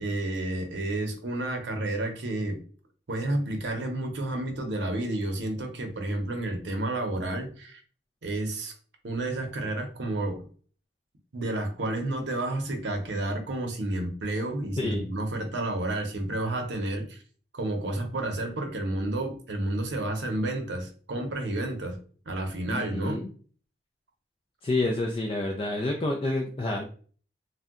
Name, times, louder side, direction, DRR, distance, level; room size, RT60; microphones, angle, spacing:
voice 1, 0.0-2.6 3.1-7.8 8.2-8.7 9.0-10.4 11.3-17.2 17.5-22.0 22.3-23.2, right 1 dB, 80° right, 4 dB, 0.7 m, -30 dB
voice 2, 22.7-23.3 24.6-26.8, left 2 dB, 30° left, 0 dB, 0.3 m, -28 dB
2.6 x 2.1 x 3.6 m, 0.42 s
head